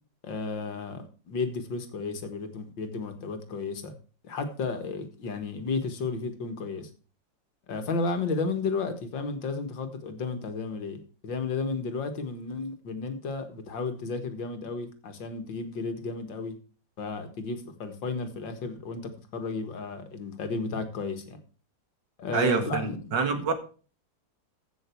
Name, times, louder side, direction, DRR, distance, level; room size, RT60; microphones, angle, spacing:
voice 1, 0.2-3.9 4.2-6.9 7.7-16.6 17.0-21.4 22.2-23.0 23.4-23.5, left 4 dB, 80° left, 8 dB, 2.5 m, -33 dB
voice 2, 22.3-23.5, right 5 dB, 70° right, 8 dB, 2.3 m, -26 dB
15.5 x 6.4 x 4.6 m, 0.37 s
omnidirectional pair, 2.0 m